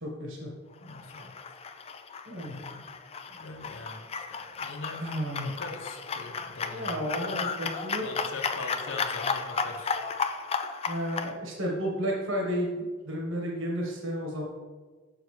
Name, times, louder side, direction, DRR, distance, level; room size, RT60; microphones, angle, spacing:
voice 1, 0.0-0.5 2.2-2.5 5.0-5.5 6.7-8.1 10.9-14.5, equal, 70° right, -2 dB, 1.4 m, -32 dB
voice 2, 0.8-1.3 2.4-2.9 3.3-5.0 5.4-7.6 8.0-10.0, left 3 dB, 65° left, 4 dB, 0.9 m, -42 dB
sound 1, 0.8-11.3, left 5 dB, 30° left, 0.3 m, -34 dB
6.5 x 6.3 x 3.2 m, 1.4 s
head